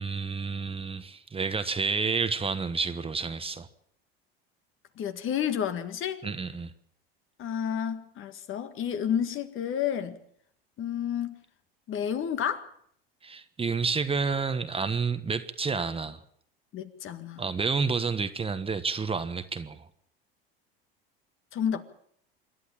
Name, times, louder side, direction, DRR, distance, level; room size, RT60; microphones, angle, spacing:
voice 1, 0.0-3.7 6.2-6.7 13.2-16.2 17.4-19.8, right 4 dB, 20° right, 1.3 m, -30 dB
voice 2, 5.0-6.2 7.4-10.2 10.8-11.4 11.9-12.7 16.7-17.4 21.5-21.8, left 9 dB, 45° left, 1.9 m, -30 dB
26.5 x 11.5 x 8.6 m
hypercardioid pair, 85°, 30 cm